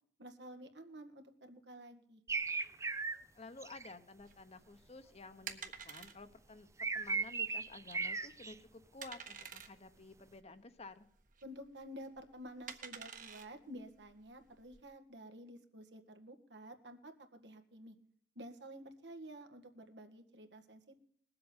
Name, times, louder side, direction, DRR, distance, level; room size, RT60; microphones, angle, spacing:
voice 1, 0.2-2.2 11.4-18.0 18.4-21.0, right 1 dB, 85° right, 6 dB, 1.9 m, -51 dB
sound 1, 2.3-3.2 3.6-3.9 6.8-8.5, right 4 dB, 15° right, 0.5 m, -37 dB
voice 2, 3.3-11.1, left 3 dB, 40° left, 10 dB, 1.1 m, -53 dB
sound 2, 4.2-14.8, right 7 dB, 50° right, 1.4 m, -51 dB
19.5 x 7.9 x 8.9 m, 0.63 s
head